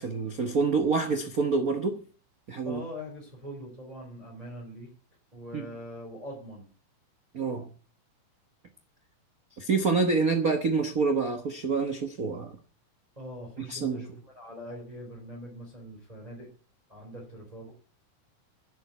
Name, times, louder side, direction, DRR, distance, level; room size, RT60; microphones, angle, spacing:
voice 1, 0.0-2.0 2.5-2.8 5.5-5.6 7.3-7.7 9.6-12.6 13.7-14.1, right 4 dB, 75° right, 0.8 m, -27 dB
voice 2, 2.6-4.9 5.3-6.7 13.2-16.5 16.9-17.7, equal, 10° right, 4.2 m, -42 dB
11.5 x 8.1 x 8.2 m
omnidirectional pair, 3.6 m